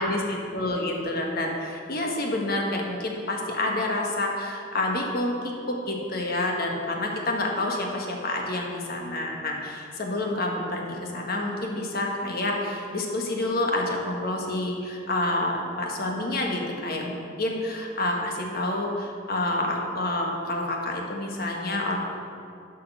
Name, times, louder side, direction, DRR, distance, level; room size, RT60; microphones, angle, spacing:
voice 1, 0.0-5.4 5.7-22.0, left 1 dB, 50° left, 0 dB, 1.4 m, -28 dB
10.5 x 5.6 x 6.6 m, 2.4 s
head